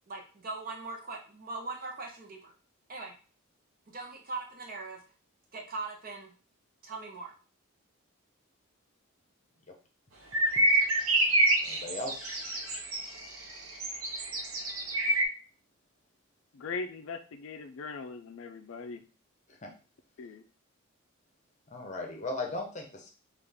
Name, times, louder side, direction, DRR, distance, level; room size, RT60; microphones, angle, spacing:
voice 1, 0.1-2.5 2.9-3.1 3.9-5.0 5.5-6.3 6.8-7.3, right 3 dB, 40° right, 1 dB, 0.7 m, -40 dB
sound 1, 10.3-15.3, right 1 dB, 85° right, 0.8 m, -27 dB
voice 2, 11.6-12.4 19.6-19.7 21.7-23.1, left 2 dB, 35° left, 1 dB, 0.7 m, -37 dB
voice 3, 16.5-19.0 20.2-20.4, left 4 dB, 70° left, 8 dB, 0.4 m, -40 dB
3.7 x 2.4 x 3.4 m, 0.36 s
head